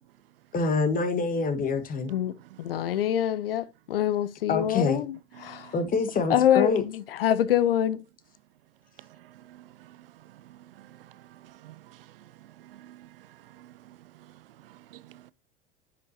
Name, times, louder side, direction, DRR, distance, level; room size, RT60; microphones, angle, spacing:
voice 1, 0.5-2.1 4.5-5.0 5.7-6.8, left 4 dB, 30° left, 1.6 m, -26 dB
voice 2, 2.6-5.7 6.3-8.0, left 11 dB, 75° left, 0.8 m, -25 dB
voice 3, 5.4-5.7 9.0-12.2 12.6-15.3, right 14 dB, 70° right, 0.6 m, -52 dB
9.5 x 6.0 x 2.8 m
hypercardioid pair, 85°, 29 cm